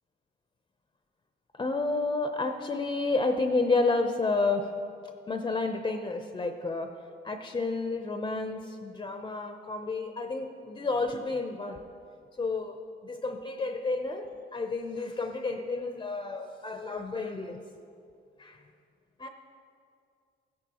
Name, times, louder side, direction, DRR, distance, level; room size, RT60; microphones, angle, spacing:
voice 1, 1.5-4.7 5.3-6.9 7.2-11.8 12.4-12.8 13.0-17.6 18.4-18.6 19.2-19.3, left 3 dB, 25° left, 6 dB, 0.6 m, -30 dB
14.0 x 10.0 x 2.9 m, 2.4 s
cardioid pair, 90°, 20 cm